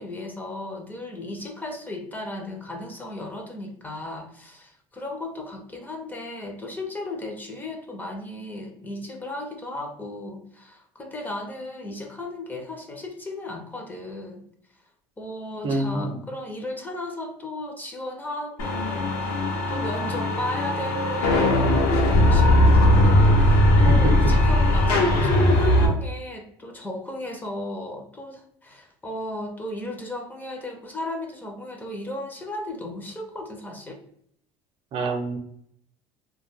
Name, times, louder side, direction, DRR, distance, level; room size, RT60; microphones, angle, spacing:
voice 1, 0.0-14.5 15.2-34.0, left 1 dB, 15° left, 3 dB, 0.4 m, -35 dB
voice 2, 15.6-16.2 23.9-24.1 34.9-35.4, right 2 dB, 50° right, 5 dB, 0.5 m, -26 dB
sound 1, 18.6-25.9, left 1 dB, 85° left, 0.7 m, -19 dB
2.2 x 2.1 x 3.2 m, 0.68 s
cardioid pair, 125°, 12 cm